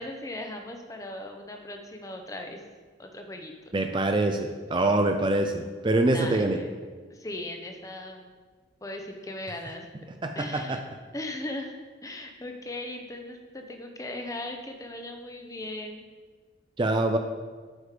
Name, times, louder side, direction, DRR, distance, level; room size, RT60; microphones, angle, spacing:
voice 1, 0.0-2.6 3.0-3.7 6.1-6.7 7.1-8.3 8.8-9.8 10.3-10.8 11.1-11.7 12.0-16.0, left 1 dB, 20° left, 4 dB, 0.7 m, -38 dB
voice 2, 3.7-6.6 10.2-10.8 16.8-17.2, right 2 dB, 25° right, 5 dB, 0.4 m, -25 dB
8.3 x 5.0 x 5.0 m, 1.4 s
head